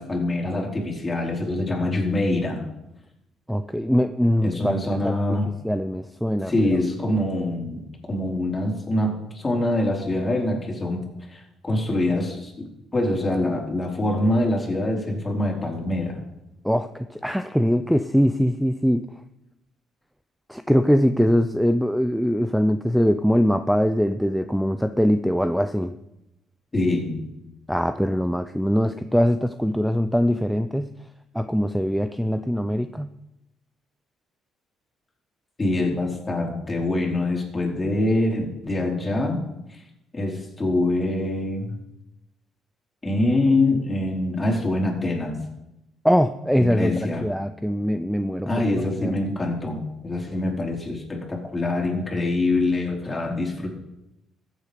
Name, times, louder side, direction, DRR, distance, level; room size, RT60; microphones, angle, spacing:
voice 1, 0.0-2.7 4.4-5.5 6.5-11.0 11.3-16.2 26.7-27.3 35.6-39.4 39.7-39.8 40.1-41.7 43.0-45.4 46.6-47.3 48.4-53.7, left 2 dB, 25° left, -1 dB, 4.1 m, -24 dB
voice 2, 3.5-4.8 5.0-5.4 5.6-6.8 16.6-19.0 20.5-25.9 27.7-30.9 31.3-33.1 46.0-48.5 49.0-49.1, equal, ahead, 10 dB, 0.6 m, -22 dB
14.5 x 8.3 x 5.1 m, 0.89 s
supercardioid pair, 80°, 0 cm